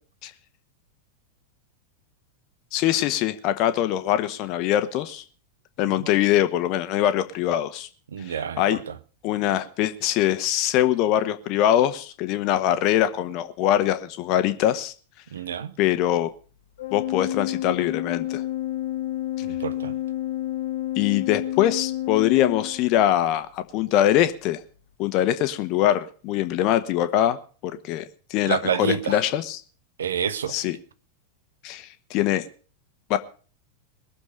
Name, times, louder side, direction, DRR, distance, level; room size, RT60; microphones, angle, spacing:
voice 1, 2.7-5.2 5.8-7.9 8.3-8.8 9.2-14.9 15.8-16.3 16.9-18.4 21.0-24.6 25.0-29.6 30.5-30.8 31.6-32.5 33.1-33.2, left 12 dB, 40° left, 1.3 m, -23 dB
voice 2, 8.1-9.0 15.3-15.7 19.4-20.0 28.5-29.2 30.0-30.6, right 7 dB, 65° right, 1.0 m, -28 dB
Organ, 16.8-23.3, left 13 dB, 60° left, 0.9 m, -30 dB
21.0 x 7.1 x 6.6 m
figure-of-eight pair, 90°, 0 cm